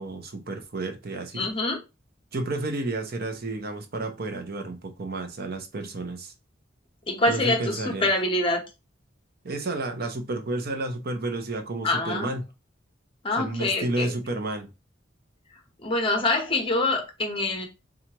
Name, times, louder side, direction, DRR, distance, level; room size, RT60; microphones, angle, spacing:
voice 1, 0.0-1.4 2.3-6.3 7.3-8.1 9.4-12.4 13.4-14.7, right 2 dB, 55° right, 0.7 m, -31 dB
voice 2, 1.3-1.8 7.1-8.6 11.8-12.4 13.2-14.2 15.8-17.7, left 2 dB, 30° left, 1.0 m, -25 dB
4.4 x 2.4 x 2.8 m
head